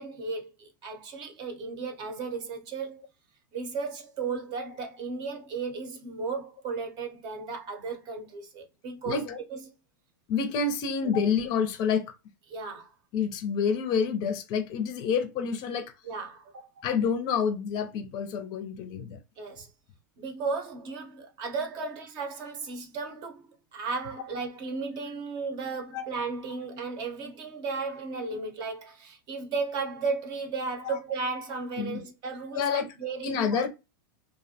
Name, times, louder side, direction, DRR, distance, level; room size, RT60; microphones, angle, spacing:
voice 1, 0.0-3.0 3.5-9.6 12.5-12.9 16.0-16.7 19.4-19.7 20.2-33.6, right 4 dB, 40° right, 0.7 m, -35 dB
voice 2, 9.0-9.4 10.3-12.1 13.1-15.9 16.8-19.2 21.8-21.9 25.9-26.1 30.8-31.0 31.8-32.0 32.5-32.9 33.2-33.7, left 6 dB, 40° left, 0.5 m, -28 dB
2.5 x 2.1 x 2.7 m
supercardioid pair, 130°, 11 cm